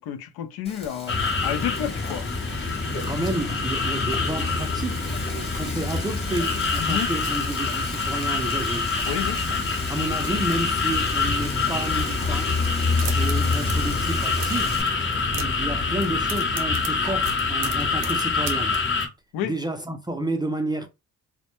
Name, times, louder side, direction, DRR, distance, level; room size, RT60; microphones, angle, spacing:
voice 1, 0.0-2.3 5.6-5.8 6.8-7.1 9.1-9.4 13.4-13.6 15.3-15.4 19.3-19.5, left 9 dB, 75° left, 0.5 m, -31 dB
Frying (food), 0.6-14.8, left 1 dB, 15° left, 1.1 m, -39 dB
sound 1, 1.1-19.1, left 4 dB, 30° left, 0.7 m, -25 dB
voice 2, 2.9-8.9 9.9-12.5 13.1-14.8 15.4-18.8 19.4-20.9, right 2 dB, 10° right, 0.3 m, -31 dB
sound 2, 12.8-13.8 14.0-14.7 15.0-15.7 15.9-18.8, right 7 dB, 85° right, 0.7 m, -36 dB
2.1 x 2.1 x 2.9 m
cardioid pair, 85°, 37 cm